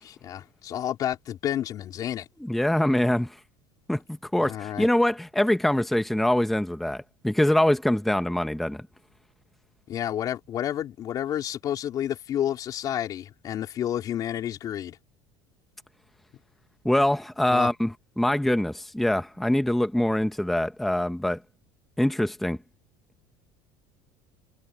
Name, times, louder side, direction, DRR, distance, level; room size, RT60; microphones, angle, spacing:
voice 1, 0.0-2.3 4.4-4.9 9.9-15.0 17.5-17.7, left 11 dB, 35° left, 3.9 m, -30 dB
voice 2, 2.4-3.4 3.9-8.9 16.8-21.4 22.0-22.6, left 1 dB, ahead, 0.9 m, -24 dB
cardioid pair, 170°, 11 cm